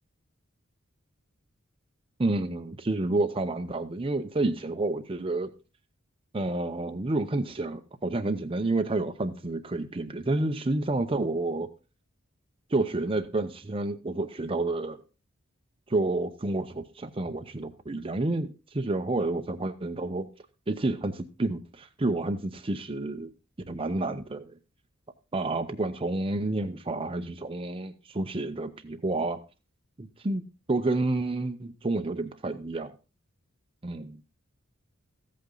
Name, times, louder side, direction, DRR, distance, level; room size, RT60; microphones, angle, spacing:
voice 1, 2.2-5.5 6.3-11.7 12.7-15.0 15.9-20.3 20.7-23.3 23.7-24.5 25.3-29.4 30.0-30.4 30.7-32.9 33.8-34.2, right 2 dB, 25° right, 7 dB, 0.7 m, -29 dB
13.5 x 8.5 x 3.8 m, 0.31 s
head